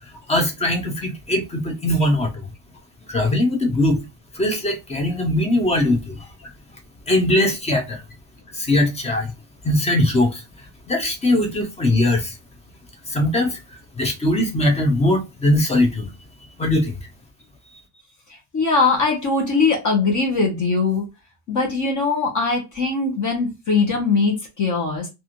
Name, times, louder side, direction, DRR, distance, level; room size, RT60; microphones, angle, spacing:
voice 1, 0.3-2.5 3.1-4.0 4.3-6.3 7.1-8.0 8.5-9.3 9.6-10.4 10.9-12.4 13.1-13.6 14.0-16.1 16.6-17.0, left 1 dB, 15° left, 0.3 m, -20 dB
voice 2, 18.3-21.1 21.5-25.1, left 4 dB, 40° left, 0.8 m, -21 dB
2.9 x 2.5 x 2.5 m
cardioid pair, 180°, 47 cm